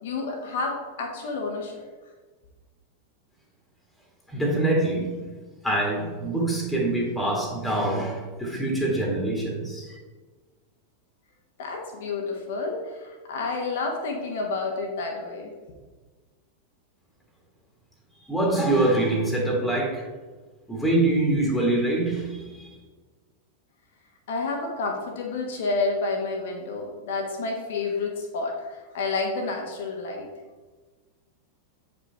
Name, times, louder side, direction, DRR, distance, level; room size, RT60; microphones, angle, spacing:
voice 1, 0.0-1.8 11.6-15.5 24.3-30.3, left 3 dB, 55° left, 1 dB, 1.1 m, -30 dB
voice 2, 4.3-5.3 5.6-10.0 18.2-20.1 20.7-22.8, right 2 dB, 5° left, -2 dB, 1.8 m, -25 dB
8.4 x 5.3 x 3.4 m, 1.3 s
figure-of-eight pair, 90°, 0 cm